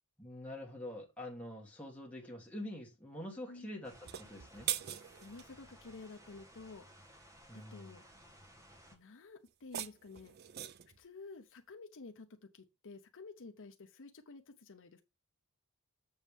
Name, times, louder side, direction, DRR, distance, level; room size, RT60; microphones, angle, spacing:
voice 1, 0.2-4.7 7.5-8.0, left 1 dB, 5° left, 2.5 m, -46 dB
sound 1, 3.8-9.0, equal, 15° right, 1.4 m, -59 dB
sound 2, 4.0-5.5 9.5-11.0, right 11 dB, 45° right, 0.4 m, -41 dB
voice 2, 5.2-6.8 7.5-8.0 8.9-10.3 11.0-15.0, left 3 dB, 60° left, 0.8 m, -51 dB
7.3 x 7.2 x 3.4 m
head